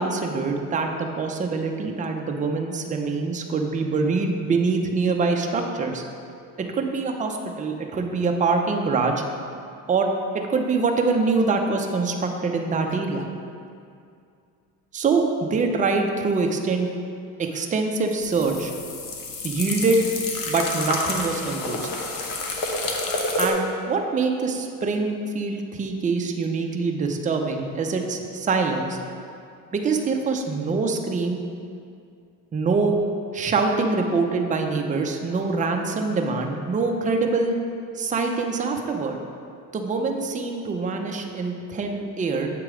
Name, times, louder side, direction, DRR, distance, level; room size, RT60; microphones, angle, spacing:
voice 1, 0.0-6.0 6.7-9.2 9.9-10.1 10.3-13.2 14.9-16.9 17.4-18.7 19.4-20.0 20.5-21.9 23.4-29.0 29.7-31.4 32.5-33.0 33.3-37.5 38.0-39.2 39.7-42.5, right 4 dB, 20° right, 3 dB, 0.5 m, -24 dB
sound 1, 18.2-23.5, left 2 dB, 50° left, 0.9 m, -29 dB
7.5 x 3.0 x 4.8 m, 2.4 s
supercardioid pair, 90°, 41 cm